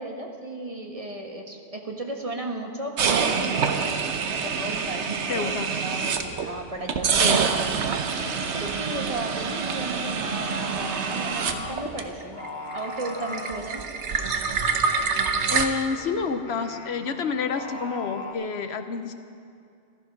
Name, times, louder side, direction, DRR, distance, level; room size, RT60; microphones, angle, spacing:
voice 1, 0.0-4.0 4.3-5.5 5.8-7.4 7.7-8.0 8.5-12.4 12.7-13.8, right 1 dB, 30° right, 2 dB, 1.3 m, -34 dB
sound 1, 3.0-6.5 6.9-12.5 12.7-15.7, right 5 dB, 90° right, 1.2 m, -26 dB
voice 2, 5.3-5.7 7.2-7.4 15.5-19.1, left 5 dB, 70° left, 8 dB, 1.0 m, -28 dB
Singing, 7.9-18.3, left 2 dB, 45° left, 1.3 m, -41 dB
14.0 x 14.0 x 5.9 m, 2.5 s
omnidirectional pair, 1.1 m